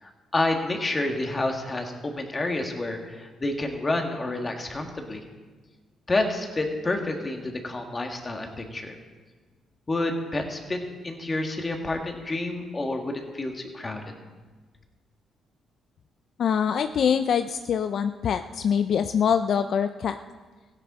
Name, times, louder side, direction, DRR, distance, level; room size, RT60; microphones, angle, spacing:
voice 1, 0.0-5.2 6.1-9.0 9.9-14.2, left 2 dB, 25° left, 3 dB, 1.9 m, -29 dB
voice 2, 16.4-20.2, left 7 dB, 60° left, 9 dB, 0.4 m, -24 dB
16.0 x 10.0 x 4.3 m, 1.4 s
cardioid pair, 90°, 0 cm